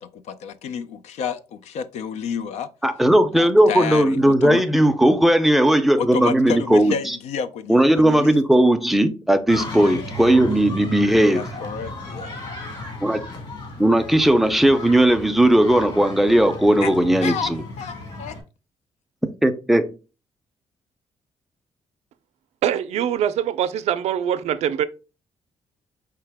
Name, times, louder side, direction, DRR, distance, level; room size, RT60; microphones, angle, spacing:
voice 1, 0.0-2.7 3.4-4.6 6.0-8.4 9.9-10.0 11.3-12.3 16.8-16.9 17.2-17.5 17.8-18.4, left 7 dB, 85° left, 0.4 m, -30 dB
voice 2, 2.8-7.2 7.7-11.5 13.0-13.3 13.8-17.6 19.4-20.0, right 1 dB, ahead, 0.4 m, -17 dB
sound 1, 9.5-18.4, left 1 dB, 45° left, 1.5 m, -34 dB
voice 3, 22.6-24.9, right 10 dB, 75° right, 0.4 m, -23 dB
4.7 x 2.8 x 3.4 m
cardioid pair, 150°, 11 cm